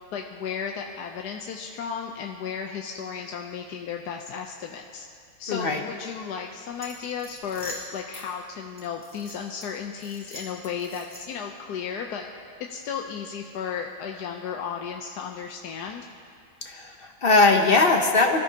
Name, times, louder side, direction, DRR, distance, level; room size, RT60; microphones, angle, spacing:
voice 1, 0.1-5.0 5.4-12.3 12.7-16.0, left 7 dB, 70° left, 2 dB, 1.2 m, -34 dB
voice 2, 5.5-5.8 16.6-18.4, left 3 dB, 45° left, 3 dB, 0.7 m, -20 dB
sound 1, 6.8-8.3 8.8-9.7 10.0-11.5, equal, 5° right, 3.3 m, -43 dB
23.5 x 13.5 x 2.8 m, 2.2 s
omnidirectional pair, 1.9 m